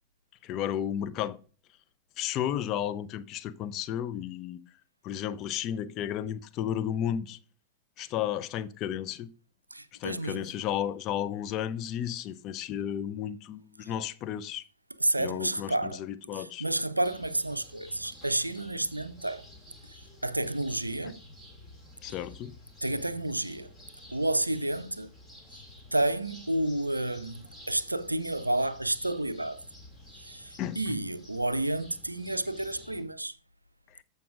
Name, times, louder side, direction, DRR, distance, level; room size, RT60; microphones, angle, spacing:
voice 1, 0.4-1.4 2.2-4.6 5.0-7.4 8.0-9.3 10.0-14.6 15.2-16.6 22.0-22.5 30.6-30.8 33.9-34.0, left 10 dB, 35° left, 0.5 m, -33 dB
voice 2, 9.7-10.5 13.8-13.9 15.0-16.0 16.3-19.5 20.2-21.2 22.8-23.7 24.1-25.1 25.9-29.6 30.2-33.4, right 1 dB, 85° right, 0.4 m, -30 dB
sound 1, 17.0-33.0, left 1 dB, 10° left, 2.4 m, -51 dB
14.5 x 5.3 x 2.5 m
figure-of-eight pair, 90°, 0 cm